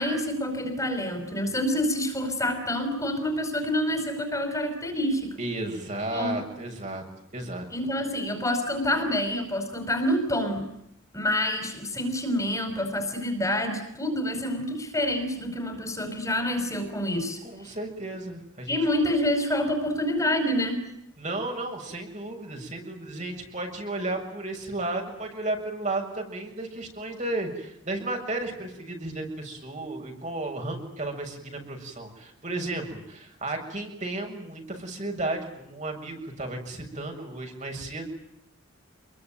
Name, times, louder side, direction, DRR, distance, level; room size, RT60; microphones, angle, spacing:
voice 1, 0.0-5.3 6.1-6.3 7.7-10.6 11.1-17.4 18.7-20.8, left 1 dB, 15° left, 6 dB, 5.2 m, -27 dB
voice 2, 5.4-7.0 7.3-7.7 17.4-18.8 21.2-38.1, right 2 dB, 35° right, 2 dB, 7.1 m, -33 dB
28.5 x 22.5 x 9.3 m, 0.80 s
head